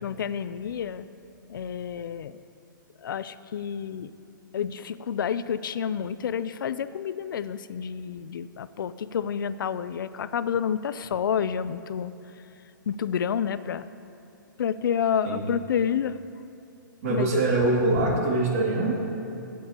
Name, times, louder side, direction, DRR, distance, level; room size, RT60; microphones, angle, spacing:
voice 1, 0.0-1.0 1.5-2.4 3.0-4.1 4.5-12.1 12.9-13.8 14.6-16.2 17.1-17.4, left 8 dB, 75° left, 14 dB, 0.4 m, -29 dB
voice 2, 17.0-18.9, right 2 dB, 40° right, -3 dB, 2.2 m, -23 dB
15.0 x 8.5 x 2.9 m, 2.8 s
hypercardioid pair, 160°, 11 cm